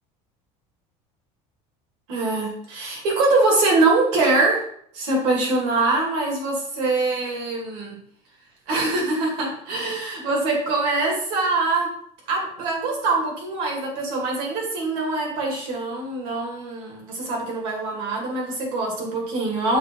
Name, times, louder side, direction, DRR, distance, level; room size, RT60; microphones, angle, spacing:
voice 1, 2.1-4.6 4.9-8.0 8.7-11.9 12.3-19.8, right 3 dB, 65° right, -1 dB, 2.4 m, -23 dB
6.5 x 2.8 x 5.2 m, 0.64 s
cardioid pair, 175°, 15 cm